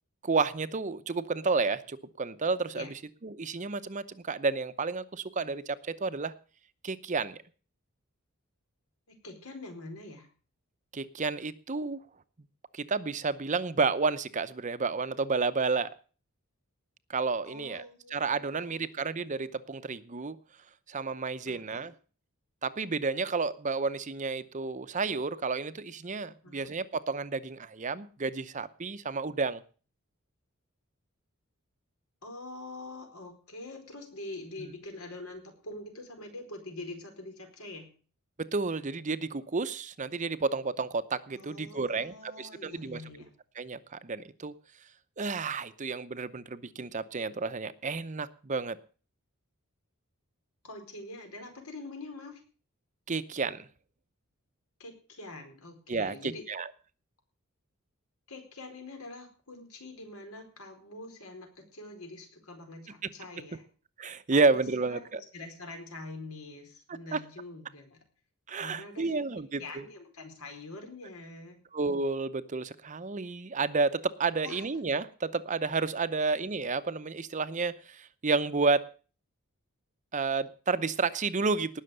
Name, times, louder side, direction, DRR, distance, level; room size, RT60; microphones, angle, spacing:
voice 1, 0.2-6.3 6.8-7.4 10.9-12.0 12.7-15.9 17.1-20.4 20.9-21.9 22.6-29.6 34.6-34.7 38.4-43.0 43.6-44.5 45.2-48.8 53.1-53.7 55.9-56.7 64.0-65.2 67.1-67.2 68.5-69.8 71.7-78.8 80.1-81.8, right 4 dB, 35° right, 14 dB, 0.7 m, -31 dB
voice 2, 9.1-10.3 17.4-18.8 21.4-21.9 26.4-26.7 32.2-37.9 41.3-43.3 50.6-52.4 54.8-56.4 58.3-63.6 64.3-64.5 64.8-65.0 65.3-68.0 68.6-71.6 74.4-74.7, left 2 dB, 80° left, 4 dB, 4.6 m, -45 dB
19.0 x 6.5 x 6.6 m, 0.39 s
head